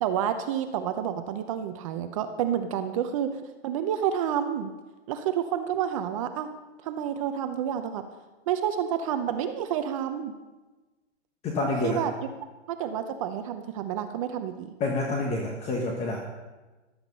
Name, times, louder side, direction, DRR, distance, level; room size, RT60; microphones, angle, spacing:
voice 1, 0.0-3.4 3.6-4.7 5.1-6.5 6.8-8.0 8.5-10.3 11.8-12.1 12.7-14.7, right 9 dB, 30° right, 8 dB, 0.7 m, -29 dB
voice 2, 11.4-12.0 14.8-16.2, left 2 dB, 15° left, 0 dB, 1.5 m, -28 dB
15.0 x 12.0 x 5.4 m, 1.2 s
hypercardioid pair, 155°, 36 cm